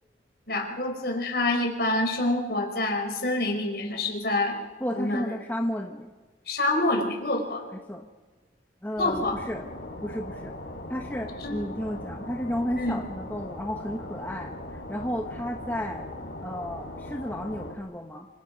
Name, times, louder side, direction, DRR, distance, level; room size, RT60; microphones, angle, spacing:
voice 1, 0.5-4.6 4.9-5.3 6.5-7.7 9.0-9.4 11.4-11.6 12.8-13.0, left 2 dB, 60° left, 2 dB, 4.9 m, -27 dB
voice 2, 4.8-6.1 7.7-8.1 8.8-9.6 10.0-10.6 10.9-16.1 16.4-18.3, equal, 10° left, 2 dB, 1.3 m, -33 dB
sound 1, 9.0-17.8, left 1 dB, 90° left, 4.3 m, -39 dB
26.5 x 26.0 x 5.3 m, 1.3 s
head